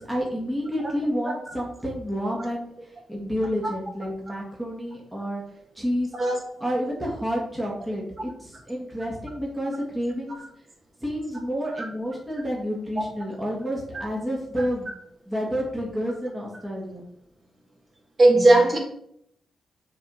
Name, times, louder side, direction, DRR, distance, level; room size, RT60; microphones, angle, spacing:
voice 1, 0.0-5.4 5.8-6.1 6.6-10.4 11.0-14.9 15.3-17.0, equal, 5° right, -4 dB, 1.8 m, -29 dB
voice 2, 18.2-18.8, right 2 dB, 35° right, -1 dB, 2.2 m, -17 dB
7.0 x 3.6 x 6.2 m, 0.73 s
cardioid pair, 115°, 0 cm